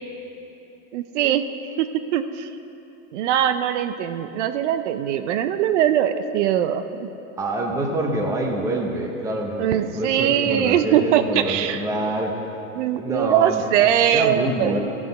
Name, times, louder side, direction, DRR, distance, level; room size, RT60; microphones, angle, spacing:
voice 1, 0.9-1.5 1.8-2.5 3.1-7.1 9.6-11.8 12.8-14.8, right 10 dB, 65° right, 10 dB, 0.6 m, -21 dB
voice 2, 7.4-12.4 12.9-14.8, right 1 dB, 10° right, 2 dB, 0.6 m, -26 dB
14.5 x 5.9 x 5.3 m, 2.9 s
supercardioid pair, 155°, 38 cm